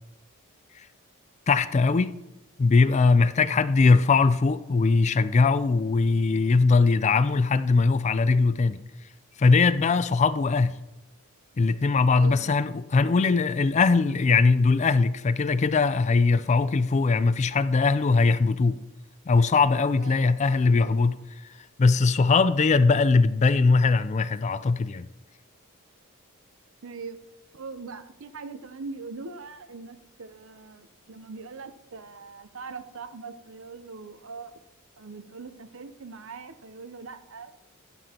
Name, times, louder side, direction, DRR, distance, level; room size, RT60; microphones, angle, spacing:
voice 1, 1.5-2.1 2.6-8.8 9.4-10.7 11.6-18.8 19.3-21.2 21.8-25.1, left 4 dB, 30° left, 0.3 m, -21 dB
voice 2, 12.1-12.5 20.0-20.6 26.8-27.2 27.5-34.6 35.0-37.7, right 4 dB, 65° right, 0.7 m, -41 dB
12.5 x 11.0 x 2.9 m
head